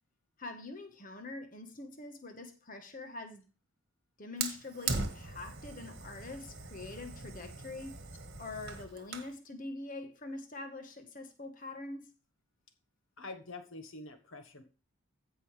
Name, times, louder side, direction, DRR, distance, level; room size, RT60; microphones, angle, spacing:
voice 1, 0.4-3.5 4.2-8.0 8.4-12.1, left 3 dB, 40° left, 1.3 m, -44 dB
Fire, 4.4-9.4, right 4 dB, 50° right, 1.7 m, -40 dB
voice 2, 13.2-14.6, left 3 dB, 70° left, 1.3 m, -46 dB
16.0 x 5.5 x 3.3 m
head